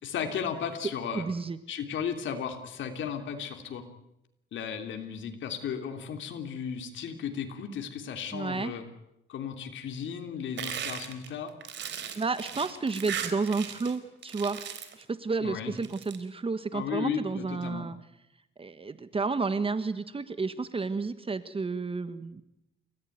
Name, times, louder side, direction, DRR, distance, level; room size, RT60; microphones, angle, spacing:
voice 1, 0.0-1.3 1.7-3.8 4.5-8.9 9.3-11.5 15.4-15.7 16.7-17.9, left 7 dB, 70° left, 5 dB, 3.2 m, -35 dB
voice 2, 1.1-1.6 8.3-8.7 12.1-14.6 14.9-18.0 18.6-22.4, right 4 dB, 30° right, 12 dB, 1.5 m, -31 dB
sound 1, 10.6-14.0 14.2-15.0 15.7-16.2, right 9 dB, 65° right, 3.8 m, -37 dB
30.0 x 15.0 x 9.4 m, 0.87 s
cardioid pair, 90°, 20 cm